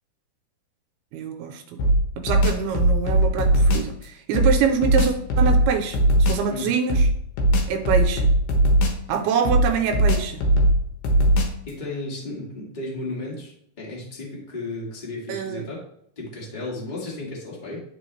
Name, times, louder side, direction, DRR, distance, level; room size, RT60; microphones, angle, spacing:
voice 1, 1.1-7.0 7.7-8.3 9.1-10.4 15.3-15.6, right 6 dB, 80° right, 5 dB, 2.6 m, -25 dB
sound 1, 1.8-3.9 4.3-6.5 6.9-9.1 9.4-11.7, right 1 dB, 70° left, 2.5 m, -19 dB
voice 2, 11.6-15.8 16.1-17.8, left 2 dB, 20° left, -4 dB, 1.2 m, -34 dB
11.5 x 4.2 x 3.2 m, 0.72 s
omnidirectional pair, 4.6 m